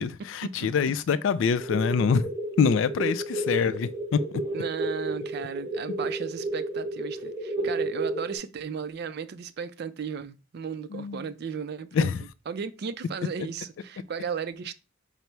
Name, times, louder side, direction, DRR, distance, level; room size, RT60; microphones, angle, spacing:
voice 1, 0.0-2.3 2.6-3.9 4.3-4.4 10.9-11.3 11.9-12.2, left 6 dB, 70° left, 0.3 m, -25 dB
sound 1, 1.6-8.4, right 2 dB, 20° right, 0.9 m, -32 dB
voice 2, 4.5-12.1 12.5-14.7, right 6 dB, 55° right, 0.4 m, -35 dB
5.4 x 2.0 x 4.5 m
head